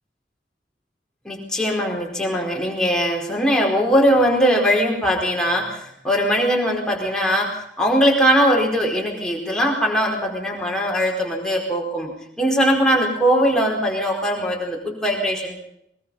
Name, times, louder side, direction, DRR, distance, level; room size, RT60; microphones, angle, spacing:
voice 1, 1.2-15.6, equal, 5° left, -1 dB, 4.7 m, -20 dB
22.5 x 22.0 x 5.6 m, 0.76 s
head